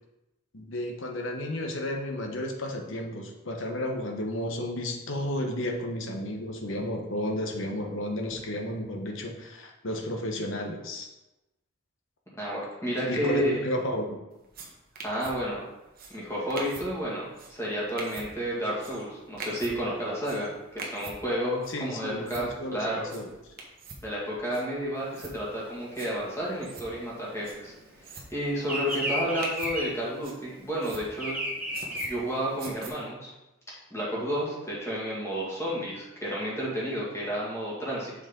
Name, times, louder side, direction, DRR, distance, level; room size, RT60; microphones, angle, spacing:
voice 1, 0.5-11.1 13.1-14.2 21.7-23.3, left 1 dB, 65° left, 2 dB, 1.0 m, -32 dB
voice 2, 12.4-13.6 15.0-15.7 16.1-23.1 24.0-27.7 28.0-31.4 32.0-33.3 33.9-38.1, equal, 15° left, -6 dB, 2.0 m, -31 dB
sound 1, 14.3-32.9, right 3 dB, 45° right, 1.1 m, -46 dB
Bird vocalization bird call bird song, 25.0-27.9 28.2-32.9, equal, 5° right, 1.3 m, -33 dB
6.5 x 5.4 x 3.8 m, 0.99 s
head